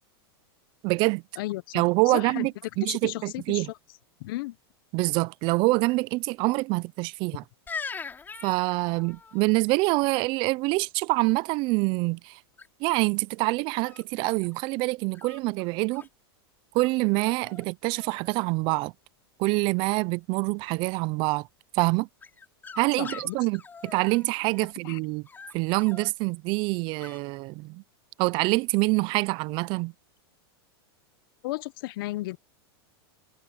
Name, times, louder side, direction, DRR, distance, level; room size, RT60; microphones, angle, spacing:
voice 1, 0.8-1.2 1.7-2.5 2.8-3.7 4.9-7.4 8.4-12.4 12.8-16.0 16.7-18.9 19.4-21.5 21.7-22.1 22.8-25.2 25.5-27.8 28.2-29.9, right 25 dB, 40° right, 0.4 m, -26 dB
voice 2, 1.4-2.5 2.8-3.8 4.2-4.6 23.0-23.4 24.8-25.0 31.4-32.4, left 19 dB, 60° left, 0.8 m, -34 dB
sound 1, 7.7-9.4 12.6-13.0 13.7-14.6 15.1-16.1 16.8-16.9 17.2-17.7 17.9-18.5 22.2-24.7 25.2-26.1 27.0-27.2, left 5 dB, 15° left, 5.9 m, -42 dB
supercardioid pair, 140°, 13 cm